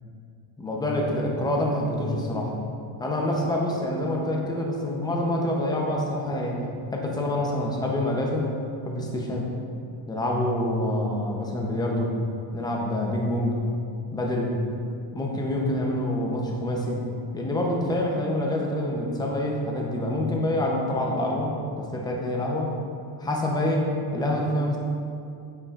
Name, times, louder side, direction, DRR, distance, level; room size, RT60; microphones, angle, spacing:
voice 1, 0.6-2.5 3.0-6.6 6.9-8.5 8.9-9.5 10.1-12.1 12.5-13.6 14.1-14.5 15.1-17.0 17.3-22.7 23.2-24.8, left 1 dB, 10° left, -1 dB, 0.7 m, -26 dB
8.3 x 7.0 x 2.5 m, 2.5 s
cardioid pair, 155°, 48 cm